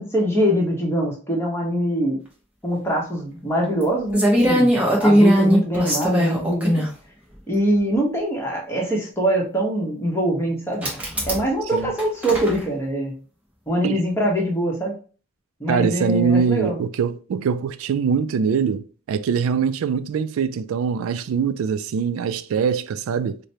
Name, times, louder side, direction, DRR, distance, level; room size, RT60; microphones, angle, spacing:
voice 1, 0.0-2.2 2.6-4.7 5.0-6.9 7.5-10.9 11.3-13.1 13.7-15.0 15.6-16.8, right 1 dB, 10° left, 1.0 m, -23 dB
sound 1, 3.8-3.9 4.1-6.9 7.9-8.0 10.8-11.5 11.8-12.6, equal, 5° right, 0.8 m, -19 dB
voice 2, 15.7-23.4, right 6 dB, 90° right, 0.3 m, -23 dB
4.8 x 2.1 x 2.7 m
head